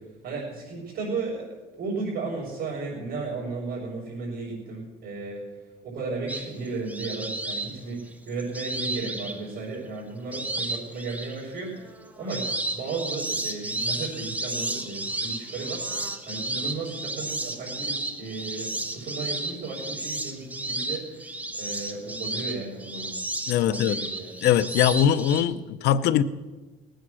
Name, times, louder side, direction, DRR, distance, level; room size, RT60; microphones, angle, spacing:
voice 1, 0.2-5.4 5.8-16.0 16.2-23.1 23.5-24.5, right 3 dB, 55° right, -6 dB, 5.4 m, -34 dB
sound 1, 6.3-9.7 10.3-11.4 11.8-25.4, right 2 dB, 10° right, 1.2 m, -32 dB
voice 2, 23.5-24.0 24.4-26.2, left 10 dB, 80° left, 15 dB, 0.7 m, -21 dB
19.5 x 9.2 x 6.3 m, 1.3 s
cardioid pair, 110°, 17 cm